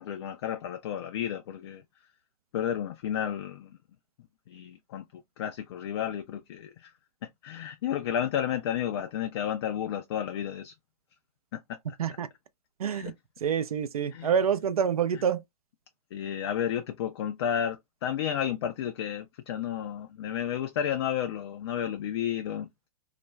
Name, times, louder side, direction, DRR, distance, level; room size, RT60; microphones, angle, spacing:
voice 1, 0.0-1.8 2.5-3.8 4.5-6.9 7.4-10.7 11.5-11.8 12.8-13.1 14.1-14.3 16.1-22.7, left 9 dB, 45° left, 0.4 m, -32 dB
voice 2, 12.8-13.1 13.4-15.4, right 7 dB, 65° right, 0.5 m, -27 dB
2.4 x 2.2 x 3.1 m
figure-of-eight pair, 115°, 20 cm